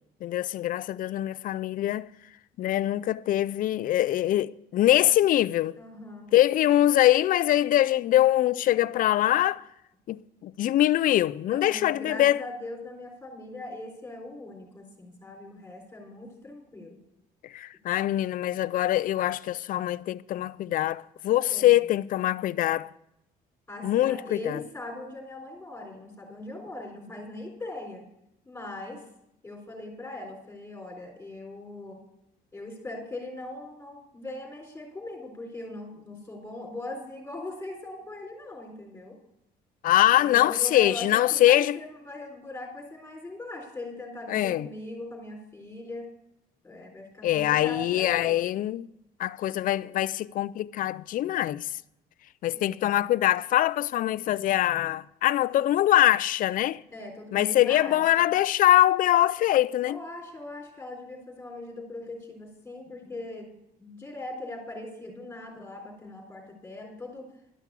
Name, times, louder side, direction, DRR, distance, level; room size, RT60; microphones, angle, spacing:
voice 1, 0.2-2.1 2.6-5.8 6.3-9.6 10.1-12.4 17.5-22.9 23.8-24.6 39.8-41.8 44.3-44.7 47.2-48.9 49.2-51.7 52.4-56.8 57.3-60.0, left 13 dB, 55° left, 0.4 m, -23 dB
voice 2, 5.8-6.3 11.5-17.0 21.5-21.8 23.7-28.0 28.5-29.0 29.4-32.0 32.5-39.2 40.0-46.1 46.6-48.5 52.5-52.9 56.9-58.3 59.8-63.5 63.8-67.3, left 2 dB, 10° left, 3.8 m, -40 dB
12.0 x 5.9 x 8.2 m
cardioid pair, 110°, 17 cm